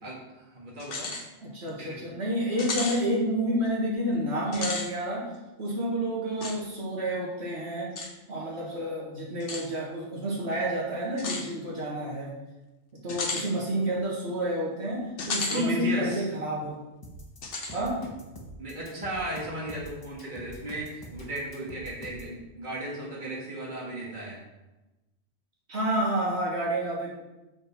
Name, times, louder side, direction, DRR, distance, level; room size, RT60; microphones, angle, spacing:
voice 1, 0.0-1.1 1.8-2.0 15.5-16.2 18.6-24.4, right 1 dB, 45° right, -4 dB, 1.8 m, -35 dB
sound 1, 0.8-1.3 1.7-1.8 2.6-3.0 4.4-4.9 6.4-6.6 8.0-8.1 9.4-9.7 11.2-11.5 13.1-13.5 15.2-15.7 16.1-16.2 17.4-17.8, left 3 dB, 80° left, 1.3 m, -33 dB
voice 2, 1.4-5.3 5.6-7.9 8.3-12.3 12.9-16.8 17.7-18.0 25.7-27.1, right 1 dB, 65° right, -5 dB, 2.0 m, -29 dB
sound 2, 17.0-22.3, equal, 20° left, 1.3 m, -45 dB
6.8 x 6.2 x 4.3 m, 1.0 s
omnidirectional pair, 1.2 m